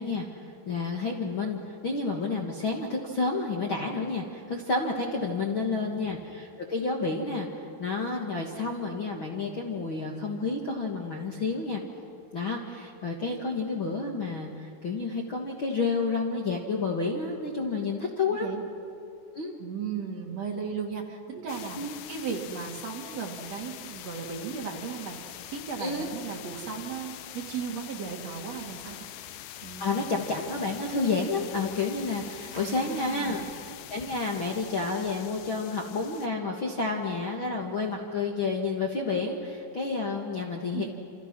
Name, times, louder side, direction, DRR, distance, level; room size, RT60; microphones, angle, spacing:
voice 1, 0.0-11.8 12.3-18.5 19.3-19.5 21.8-21.9 25.8-26.1 29.8-40.9, left 3 dB, 45° left, 0 dB, 1.7 m, -30 dB
voice 2, 5.5-6.0 18.3-18.6 19.6-21.8 22.1-29.1 29.6-30.0 32.5-33.4 40.7-41.0, right 6 dB, 50° right, 1 dB, 2.8 m, -36 dB
sound 1, 21.5-36.3, left 12 dB, 80° left, 2.7 m, -44 dB
28.5 x 28.0 x 6.1 m, 2.5 s
omnidirectional pair, 4.4 m